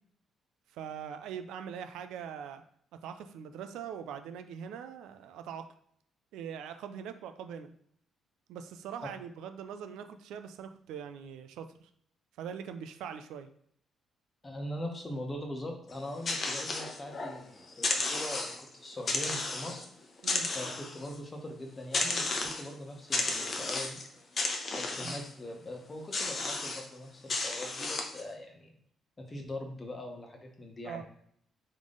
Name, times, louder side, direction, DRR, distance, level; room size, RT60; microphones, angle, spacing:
voice 1, 0.7-2.6 3.0-5.7 6.3-7.7 8.5-11.9 12.4-13.5 20.2-20.5 25.0-25.2 30.8-31.0, right 8 dB, 90° right, 8 dB, 0.4 m, -42 dB
voice 2, 14.4-19.8 20.5-24.0 24.7-28.7 29.2-31.0, left 1 dB, 25° left, 3 dB, 1.1 m, -41 dB
sound 1, 15.9-17.4 17.7-18.7 19.1-19.9 20.2-21.2 21.9-22.7 23.1-24.1 24.4-25.3 26.1-26.9 27.3-28.2, left 3 dB, 45° left, 0.8 m, -33 dB
3.6 x 3.2 x 3.8 m, 0.67 s
cardioid pair, 90°, 0 cm